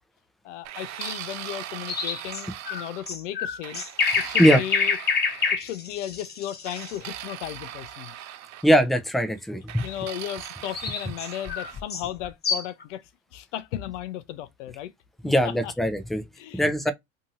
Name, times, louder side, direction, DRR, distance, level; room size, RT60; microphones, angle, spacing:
voice 1, 0.4-3.8 4.2-5.0 5.5-8.1 9.8-14.9 15.2-15.7 16.4-16.9, left 12 dB, 80° left, 0.5 m, -35 dB
sound 1, 0.6-3.2 3.6-5.6 6.6-8.7 9.7-11.8, right 12 dB, 50° right, 0.6 m, -39 dB
sound 2, 1.9-7.0 10.4-12.8, left 5 dB, 25° left, 0.9 m, -27 dB
voice 2, 8.6-9.8 15.2-16.2 16.5-16.9, equal, ahead, 0.4 m, -21 dB
2.7 x 2.6 x 2.7 m
hypercardioid pair, 75°, 36 cm